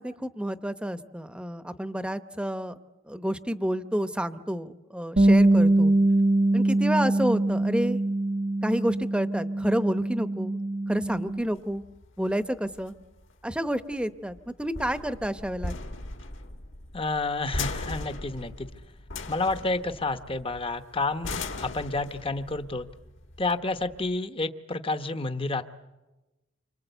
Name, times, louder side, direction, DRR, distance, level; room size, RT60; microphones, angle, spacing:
voice 1, 0.0-2.7 3.1-5.9 6.5-8.0 8.6-10.6 10.9-11.8 12.2-12.9 13.4-15.8, equal, 5° right, 11 dB, 0.9 m, -29 dB
Bass guitar, 5.2-11.4, right 2 dB, 40° right, 0.9 m, -23 dB
sound 1, 11.1-24.2, left 3 dB, 60° left, 1.8 m, -39 dB
voice 2, 16.9-18.7 19.3-22.9 23.4-25.6, left 3 dB, 25° left, 9 dB, 0.9 m, -30 dB
28.5 x 25.5 x 8.1 m, 1.1 s
head